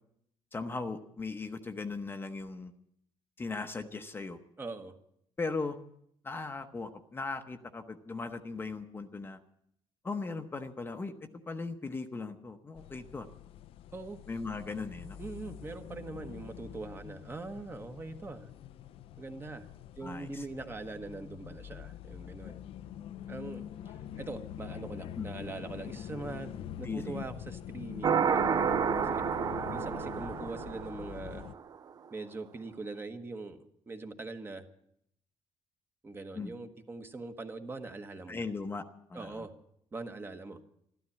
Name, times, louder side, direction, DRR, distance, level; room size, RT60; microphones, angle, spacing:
voice 1, 0.5-2.7 3.4-4.4 5.4-5.8 6.2-9.4 10.0-11.1 11.5-13.3 14.3-15.2 20.0-20.5 25.2-25.3 26.8-27.2 36.3-36.5 38.3-38.8 39.1-39.5, left 3 dB, 20° left, 7 dB, 0.9 m, -38 dB
voice 2, 4.6-5.0 13.9-14.2 15.2-18.5 19.2-19.7 20.0-22.6 23.3-29.2 29.7-31.5 32.1-34.6 36.0-38.5 39.1-39.5 39.9-40.6, right 3 dB, 20° right, 7 dB, 1.2 m, -42 dB
sound 1, 12.8-31.5, left 11 dB, 65° left, 0.5 m, -44 dB
sound 2, 28.0-31.5, right 7 dB, 40° right, 0.6 m, -30 dB
13.0 x 13.0 x 8.5 m, 0.72 s
cardioid pair, 140°, 10 cm